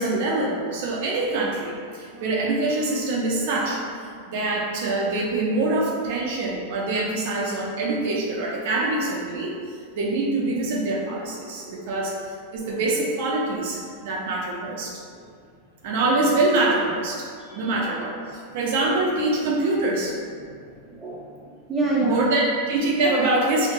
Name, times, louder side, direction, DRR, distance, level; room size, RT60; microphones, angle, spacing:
voice 1, 0.0-3.8 4.3-15.0 15.8-17.3 17.5-20.1 22.0-23.7, right 2 dB, 65° right, -3 dB, 0.4 m, -24 dB
voice 2, 20.4-21.3 21.7-22.2, right 2 dB, 15° right, -6 dB, 0.6 m, -28 dB
2.8 x 2.0 x 2.5 m, 2.1 s
hypercardioid pair, 125°, 0 cm